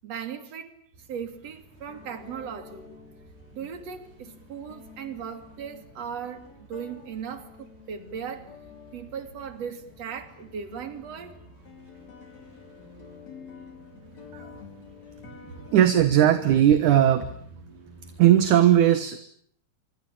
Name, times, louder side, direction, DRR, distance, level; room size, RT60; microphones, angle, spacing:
voice 1, 0.0-0.7 1.1-2.9 3.5-8.5 8.9-11.4 15.4-15.6, right 7 dB, 45° right, 9 dB, 3.4 m, -37 dB
sound 1, 0.9-18.5, right 2 dB, 90° right, 8.6 m, -53 dB
sound 2, 1.9-17.4, left 6 dB, 45° left, 5.8 m, -50 dB
voice 2, 15.7-17.3 18.2-19.2, right 11 dB, 60° right, 11 dB, 2.5 m, -18 dB
25.5 x 25.0 x 8.9 m, 0.62 s
omnidirectional pair, 4.5 m